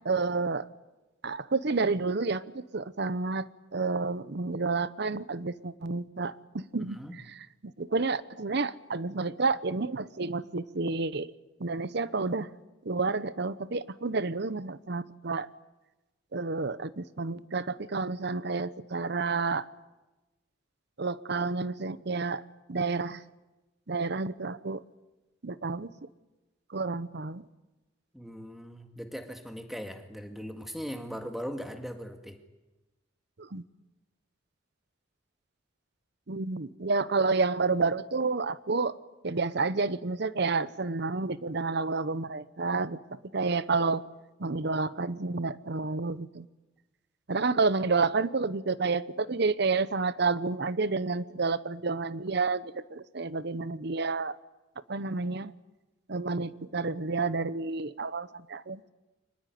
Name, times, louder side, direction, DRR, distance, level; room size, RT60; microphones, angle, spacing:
voice 1, 0.0-0.7 1.2-7.0 7.3-11.3 11.6-12.5 12.8-15.5 16.3-19.7 21.0-22.4 22.7-23.2 23.9-24.8 25.4-25.9 26.7-27.4 33.4-33.6 36.3-39.0 39.2-44.0 44.4-46.5 47.3-54.4 54.9-55.5 56.1-58.9, right 3 dB, 55° right, 16 dB, 0.9 m, -30 dB
voice 2, 6.8-7.2 28.1-32.4, equal, ahead, 6 dB, 2.0 m, -39 dB
24.5 x 19.5 x 9.4 m, 1.1 s
head